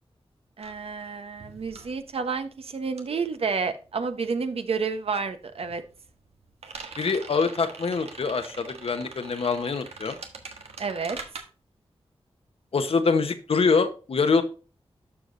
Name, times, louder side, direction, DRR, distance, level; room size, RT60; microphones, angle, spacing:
voice 1, 0.6-5.8 10.8-11.2, right 5 dB, 70° right, 8 dB, 1.1 m, -30 dB
sound 1, 0.6-4.4 4.7-11.4, right 4 dB, 90° right, 1.3 m, -43 dB
voice 2, 7.0-10.2 12.7-14.4, left 4 dB, 70° left, 8 dB, 1.1 m, -24 dB
13.0 x 4.9 x 2.6 m, 0.34 s
wide cardioid pair, 75°, 10 cm